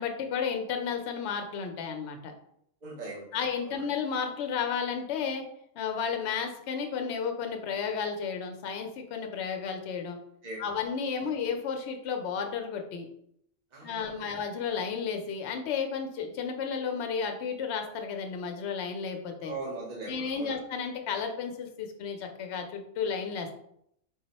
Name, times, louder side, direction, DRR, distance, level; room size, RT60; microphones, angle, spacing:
voice 1, 0.0-2.3 3.3-5.5 5.8-10.2 10.6-13.1 13.8-19.5 20.1-23.5, left 6 dB, 65° left, 4 dB, 0.8 m, -32 dB
voice 2, 2.8-3.4 3.6-3.8 10.4-10.7 11.2-11.3 13.7-14.2 19.4-20.6, right 3 dB, 40° right, -4 dB, 0.8 m, -40 dB
3.9 x 2.1 x 4.0 m, 0.73 s
omnidirectional pair, 1.3 m